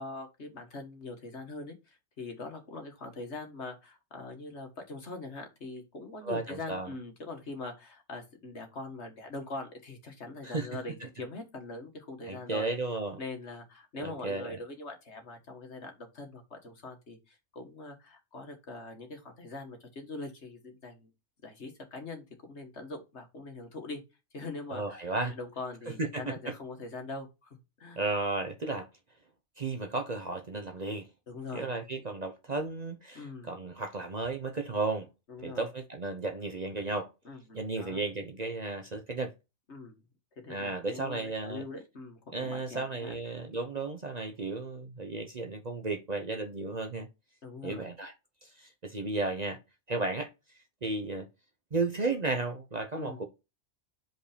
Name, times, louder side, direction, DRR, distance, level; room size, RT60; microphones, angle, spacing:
voice 1, 0.0-12.7 13.2-21.1 21.4-24.0 24.3-28.0 31.3-31.7 33.2-33.5 35.3-35.6 37.3-38.0 39.7-39.9 40.4-43.1 47.4-47.9 53.0-53.2, left 3 dB, 60° left, 1.9 m, -42 dB
voice 2, 6.2-6.9 10.4-10.8 12.3-13.2 14.0-14.6 24.7-25.3 26.0-26.5 28.0-28.9 29.6-31.1 31.5-35.1 35.4-37.1 37.5-39.3 40.5-41.6 42.3-47.1 47.6-48.1 48.4-49.6 49.9-50.3 50.8-51.3 51.7-53.2, right 3 dB, 35° right, 0.9 m, -34 dB
5.4 x 4.5 x 5.0 m
omnidirectional pair, 1.3 m